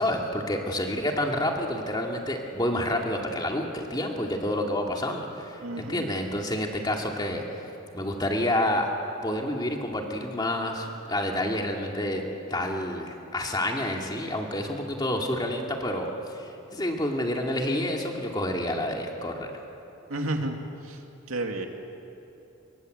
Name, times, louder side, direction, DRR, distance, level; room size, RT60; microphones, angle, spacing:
voice 1, 0.0-7.7 7.9-8.9 9.2-12.2 12.5-19.5, left 1 dB, 20° left, 1 dB, 2.4 m, -29 dB
voice 2, 5.6-6.0 20.1-20.6 20.8-21.0 21.3-21.7, right 1 dB, 85° right, 3 dB, 2.6 m, -30 dB
26.0 x 23.0 x 8.1 m, 3.0 s
head